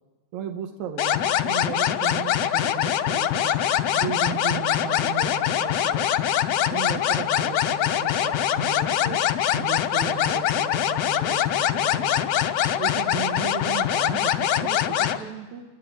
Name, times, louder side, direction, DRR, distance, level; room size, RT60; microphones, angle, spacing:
voice 1, 0.3-3.6 3.9-6.3 6.7-9.2 9.5-12.3 12.8-15.6, right 8 dB, 80° right, 4 dB, 2.7 m, -35 dB
sound 1, 1.0-15.2, left 10 dB, 70° left, 1.8 m, -23 dB
29.5 x 12.0 x 8.7 m, 1.2 s
omnidirectional pair, 3.4 m